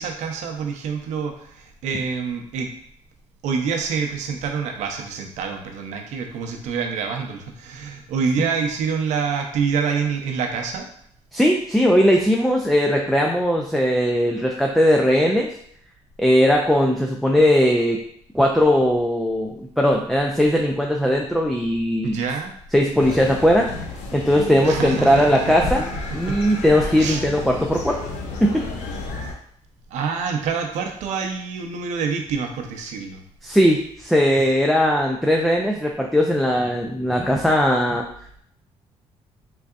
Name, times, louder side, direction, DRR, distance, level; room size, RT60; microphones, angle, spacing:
voice 1, 0.0-2.7 3.4-10.9 22.0-22.5 24.6-25.4 26.3-26.4 27.0-27.2 29.9-33.2, right 6 dB, 80° right, 3 dB, 0.6 m, -26 dB
voice 2, 11.3-15.5 16.2-18.0 18.3-22.2 22.7-23.7 24.1-28.0 28.4-28.7 33.4-38.0, equal, ahead, 1 dB, 0.4 m, -19 dB
sound 1, 23.0-29.3, left 3 dB, 85° left, 0.6 m, -31 dB
3.8 x 3.3 x 2.4 m, 0.66 s
cardioid pair, 90°, 12 cm